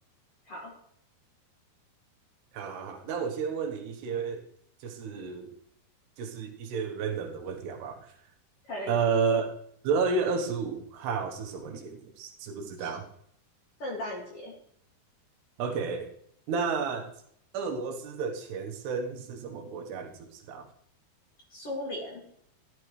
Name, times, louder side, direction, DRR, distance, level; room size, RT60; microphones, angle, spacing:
voice 1, 2.5-4.4 4.8-5.5 6.2-8.1 8.9-9.5 9.8-13.1 15.6-16.1 16.5-17.1 17.5-20.7, right 5 dB, 80° right, 3 dB, 3.3 m, -31 dB
voice 2, 8.7-9.0 12.8-12.9 13.8-14.5 21.5-22.2, left 1 dB, 40° left, -2 dB, 2.8 m, -37 dB
12.0 x 12.0 x 3.2 m, 0.69 s
omnidirectional pair, 4.7 m